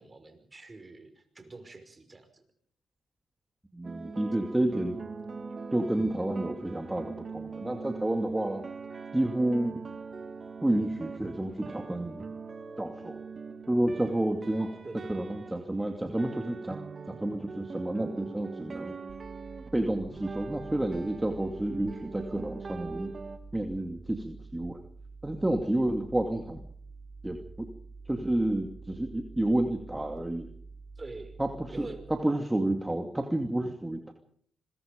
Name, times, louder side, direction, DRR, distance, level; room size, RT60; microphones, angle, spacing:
voice 1, 0.0-2.4 14.6-15.2 31.0-31.4 31.7-32.1, right 3 dB, 30° right, 8 dB, 5.4 m, -45 dB
voice 2, 3.7-5.0 5.7-8.6 9.1-9.8 10.6-12.2 12.8-13.2 13.7-14.7 15.1-16.8 17.1-19.0 19.7-23.1 23.5-24.8 25.2-26.7 27.2-27.7 28.1-30.5 31.4-34.1, right 1 dB, 15° right, 4 dB, 2.4 m, -30 dB
sound 1, 3.8-23.4, right 4 dB, 45° right, 2.2 m, -42 dB
sound 2, 19.1-32.0, right 4 dB, 65° right, 6.3 m, -48 dB
25.5 x 22.5 x 5.2 m, 0.62 s
cardioid pair, 65°, 0 cm